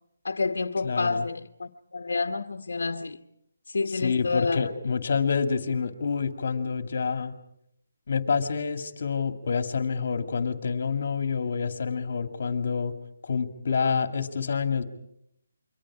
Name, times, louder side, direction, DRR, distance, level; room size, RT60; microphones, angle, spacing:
voice 1, 0.2-3.2 3.7-4.7, left 4 dB, 70° left, 1.2 m, -29 dB
voice 2, 0.8-1.3 3.9-7.4 8.1-12.9 13.2-14.8, left 5 dB, 50° left, 2.2 m, -27 dB
28.5 x 24.0 x 4.9 m
hypercardioid pair, 165°, 0 cm